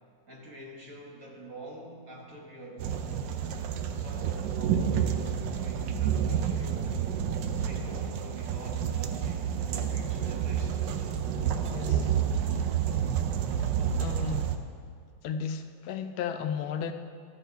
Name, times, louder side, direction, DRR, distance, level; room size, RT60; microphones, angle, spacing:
voice 1, 0.3-3.1 3.9-7.3 7.6-11.0, right 1 dB, 45° right, -2 dB, 1.5 m, -46 dB
sound 1, 2.8-14.6, right 8 dB, 70° right, 1.2 m, -29 dB
voice 2, 11.7-12.2 13.6-13.7 14.0-14.5 15.2-16.9, left 7 dB, 80° left, 8 dB, 1.3 m, -34 dB
13.5 x 6.4 x 4.6 m, 2.1 s
omnidirectional pair, 2.2 m